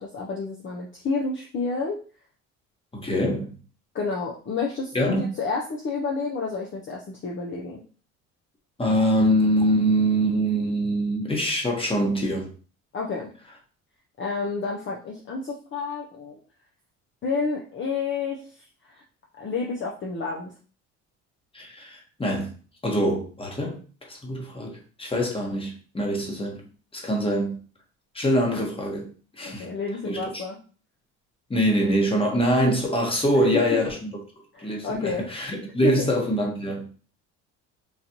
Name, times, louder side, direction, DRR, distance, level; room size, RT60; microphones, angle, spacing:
voice 1, 0.0-2.0 3.9-7.8 12.9-13.3 14.2-16.4 17.2-19.0 19.4-20.5 29.4-30.6 33.3-33.8 34.5-35.3 35.8-36.1, left 4 dB, 40° left, -1 dB, 0.7 m, -30 dB
voice 2, 2.9-3.5 4.9-5.2 8.8-12.5 21.5-22.5 22.8-26.7 26.9-27.6 28.1-29.1 29.4-29.7 30.0-30.2 31.5-34.1 34.6-36.9, equal, 15° left, 1 dB, 1.2 m, -24 dB
4.0 x 2.5 x 2.9 m, 0.39 s
supercardioid pair, 85°, 32 cm